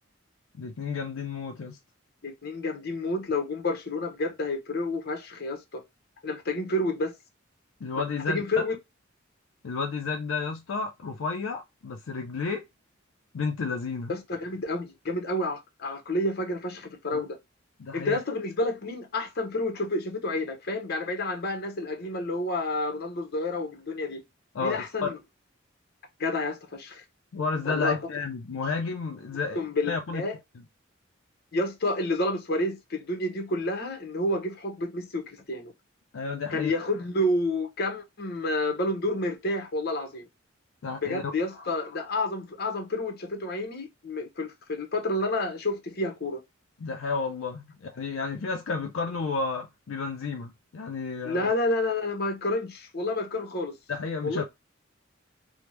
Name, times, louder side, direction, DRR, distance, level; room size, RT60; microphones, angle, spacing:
voice 1, 0.6-1.8 7.8-8.6 9.6-12.7 13.3-14.1 17.1-17.2 17.8-18.2 24.5-25.2 27.3-29.6 29.9-30.2 36.1-36.9 40.8-41.3 46.8-51.5 53.9-54.4, left 4 dB, 80° left, 0.5 m, -31 dB
voice 2, 2.2-5.8 6.2-7.1 8.0-8.8 14.1-17.4 17.9-24.2 24.6-25.2 26.2-27.0 27.6-28.0 29.5-30.4 31.5-35.7 36.5-40.3 41.0-46.4 51.2-53.8 54.2-54.4, left 2 dB, 55° left, 0.9 m, -29 dB
3.4 x 2.1 x 2.9 m
head